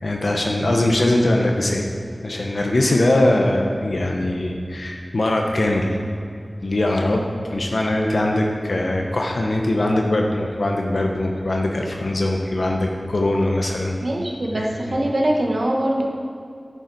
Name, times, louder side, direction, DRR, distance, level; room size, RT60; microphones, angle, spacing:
voice 1, 0.0-1.9 2.2-6.0 6.6-13.9 14.6-15.0, left 1 dB, 75° left, 1 dB, 0.8 m, -21 dB
voice 2, 14.0-16.1, right 1 dB, 65° right, 0 dB, 1.1 m, -22 dB
10.0 x 7.3 x 4.0 m, 2.4 s
wide cardioid pair, 65°, 0 cm